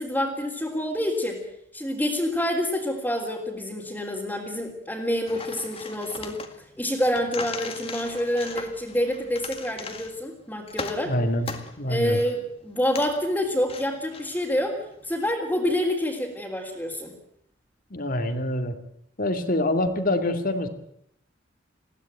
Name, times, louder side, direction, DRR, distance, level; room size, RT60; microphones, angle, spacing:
voice 1, 0.0-1.4 1.7-6.4 6.8-11.1 11.9-14.8 15.0-17.1, equal, 10° left, -5 dB, 3.3 m, -27 dB
sound 1, 5.3-15.3, left 4 dB, 30° left, 2.0 m, -39 dB
voice 2, 11.0-11.5 11.8-12.2 17.9-18.7 19.2-20.7, left 1 dB, 45° left, 8 dB, 2.5 m, -25 dB
21.0 x 16.5 x 9.1 m, 0.70 s
head